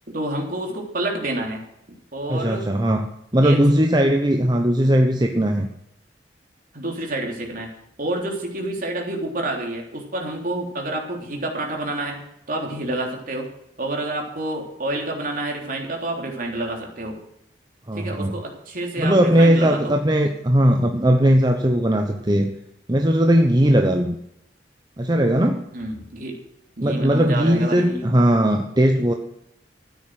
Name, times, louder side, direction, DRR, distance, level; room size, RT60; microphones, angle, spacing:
voice 1, 0.1-1.6 2.1-2.7 3.4-3.6 6.7-7.7 8.0-12.2 12.5-13.5 13.8-17.2 17.9-19.9 22.3-22.4 25.7-26.4 26.8-28.1, right 1 dB, 50° right, 1 dB, 3.4 m, -28 dB
voice 2, 2.3-3.1 3.3-5.7 17.9-18.3 19.0-22.5 22.9-24.2 25.0-25.6 26.8-29.1, equal, 25° right, 3 dB, 1.0 m, -18 dB
13.5 x 9.6 x 6.4 m, 0.79 s
head